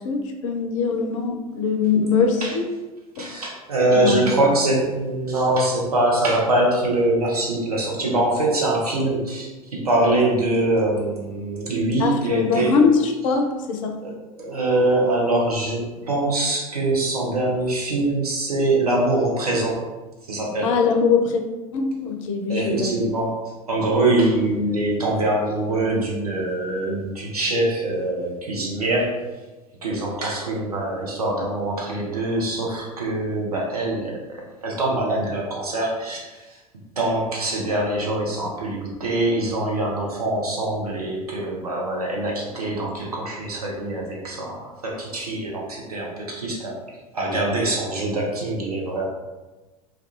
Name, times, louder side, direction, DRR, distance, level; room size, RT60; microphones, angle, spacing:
voice 1, 0.0-2.6 3.2-3.3 3.9-4.2 12.0-14.0 20.6-21.4 21.7-23.1, left 5 dB, 60° left, 4 dB, 0.4 m, -22 dB
voice 2, 3.2-12.7 14.0-19.8 20.3-20.7 22.5-23.3 23.7-29.2 29.8-36.5 37.0-46.8 47.1-49.1, right 2 dB, 80° right, -2 dB, 0.6 m, -23 dB
2.3 x 2.3 x 2.8 m, 1.2 s
figure-of-eight pair, 75°, 19 cm